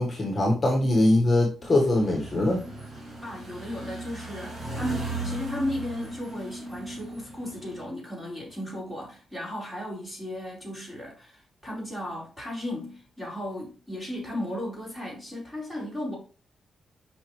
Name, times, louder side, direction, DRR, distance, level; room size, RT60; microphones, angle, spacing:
voice 1, 0.0-2.6, left 1 dB, 25° left, 1.5 m, -22 dB
sound 1, 1.6-7.8, right 2 dB, 35° right, 2.5 m, -37 dB
voice 2, 3.2-16.1, left 1 dB, 10° right, 4.2 m, -35 dB
8.1 x 5.4 x 3.2 m
wide cardioid pair, 135°, 0 cm